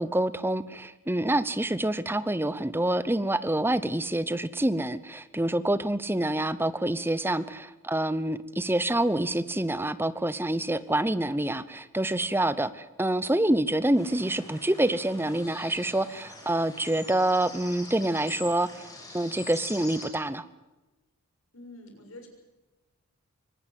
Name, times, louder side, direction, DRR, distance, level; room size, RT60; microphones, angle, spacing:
voice 1, 0.0-18.9 19.1-20.4, right 1 dB, 10° right, 15 dB, 0.8 m, -27 dB
sound 1, 14.0-20.1, left 2 dB, 15° left, 6.5 m, -44 dB
voice 2, 21.5-22.3, left 2 dB, 70° left, 4 dB, 6.8 m, -46 dB
24.0 x 19.5 x 7.7 m, 1.1 s
head